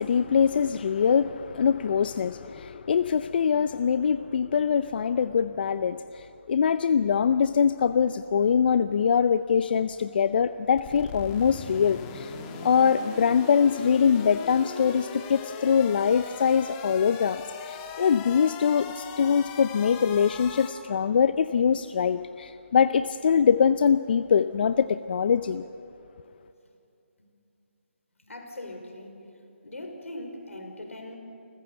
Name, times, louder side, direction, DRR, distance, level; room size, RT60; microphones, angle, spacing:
voice 1, 0.0-12.3 12.6-25.6, left 7 dB, 45° left, 12 dB, 0.5 m, -23 dB
sound 1, 10.8-20.7, left 6 dB, 20° left, 1.6 m, -40 dB
voice 2, 28.2-29.3 29.6-31.1, left 1 dB, 85° left, 4 dB, 4.6 m, -40 dB
29.0 x 14.5 x 8.0 m, 2.7 s
figure-of-eight pair, 155°, 7 cm